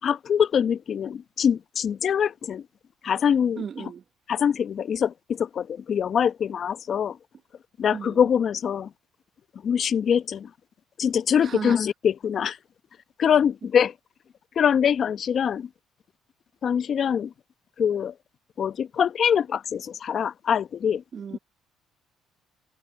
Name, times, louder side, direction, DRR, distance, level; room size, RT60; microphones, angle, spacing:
voice 1, 0.0-2.6 3.0-3.6 4.3-7.2 7.8-8.9 9.6-10.5 11.0-12.6 13.2-13.9 14.6-15.7 16.6-17.3 17.8-18.1 18.6-21.0, left 8 dB, 50° left, 1.0 m, -24 dB
voice 2, 3.6-4.0 7.9-8.3 11.4-11.8 21.1-21.4, right 7 dB, 45° right, 1.4 m, -35 dB
open air
supercardioid pair, 70°, 0 cm